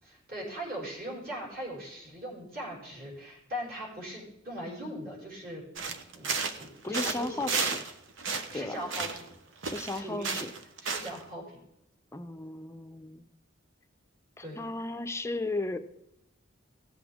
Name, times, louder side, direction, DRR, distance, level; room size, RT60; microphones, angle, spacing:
voice 1, 0.0-6.3 6.6-7.5 8.5-9.2 9.9-10.4 10.8-11.6 14.4-14.7, equal, 50° right, -5 dB, 5.1 m, -40 dB
sound 1, 5.8-7.9 8.2-9.3 9.6-11.2, right 4 dB, 65° right, 0.9 m, -33 dB
voice 2, 6.8-7.8 8.5-8.7 9.6-10.5 12.1-13.2 14.4-15.8, left 2 dB, 15° left, 8 dB, 0.5 m, -35 dB
16.5 x 8.1 x 3.6 m, 0.85 s
head